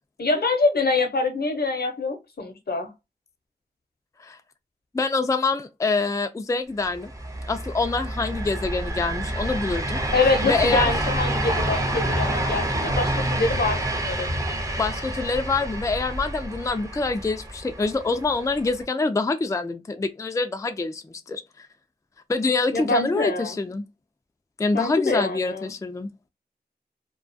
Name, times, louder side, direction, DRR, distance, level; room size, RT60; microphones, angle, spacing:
voice 1, 0.2-2.9 10.1-14.3 22.7-23.6 24.7-25.7, left 3 dB, 75° left, 0.7 m, -25 dB
voice 2, 4.9-7.1 7.5-10.0 10.4-10.9 14.8-21.7 22.3-23.8 24.6-26.1, left 3 dB, 20° left, 0.3 m, -26 dB
sound 1, 6.9-18.8, right 1 dB, 20° right, 0.6 m, -28 dB
2.3 x 2.2 x 2.5 m
wide cardioid pair, 50°, 16 cm